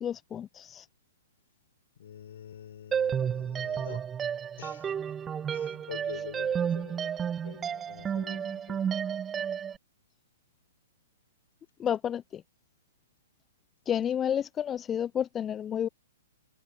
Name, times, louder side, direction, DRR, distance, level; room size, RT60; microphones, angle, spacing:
voice 1, 0.0-0.9 11.8-12.4 13.9-15.9, left 9 dB, 20° left, 0.5 m, -30 dB
voice 2, 2.0-4.1 4.6-4.9 5.5-8.8, left 9 dB, 60° left, 6.6 m, -46 dB
sound 1, 2.9-9.8, right 8 dB, 15° right, 1.6 m, -31 dB
figure-of-eight pair, 120°, 0 cm